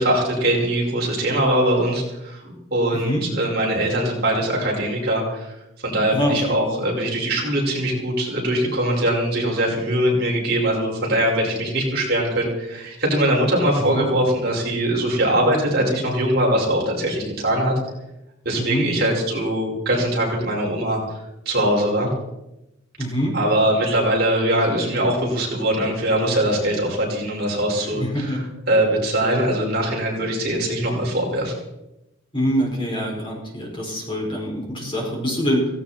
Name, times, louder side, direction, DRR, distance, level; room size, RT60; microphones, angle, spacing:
voice 1, 0.0-5.5 5.8-17.7 18.5-21.0 21.5-22.1 23.3-28.4 28.7-31.5, right 1 dB, 50° right, -2 dB, 5.3 m, -22 dB
voice 2, 2.9-3.2 6.1-6.6 13.9-14.1 18.6-18.9 23.0-23.3 27.7-28.5 32.3-35.7, equal, 25° left, -2 dB, 5.3 m, -24 dB
17.0 x 17.0 x 4.4 m, 0.93 s
head